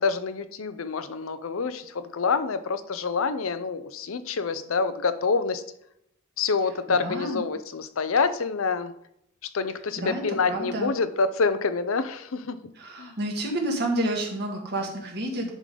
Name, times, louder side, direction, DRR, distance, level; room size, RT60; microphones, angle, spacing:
voice 1, 0.0-5.6 6.4-8.9 9.5-12.6 13.0-13.2, left 4 dB, 85° left, 12 dB, 0.6 m, -27 dB
voice 2, 6.9-7.5 10.0-10.9 12.8-15.5, right 1 dB, 50° right, 0 dB, 1.7 m, -29 dB
10.5 x 3.8 x 5.0 m, 0.76 s
head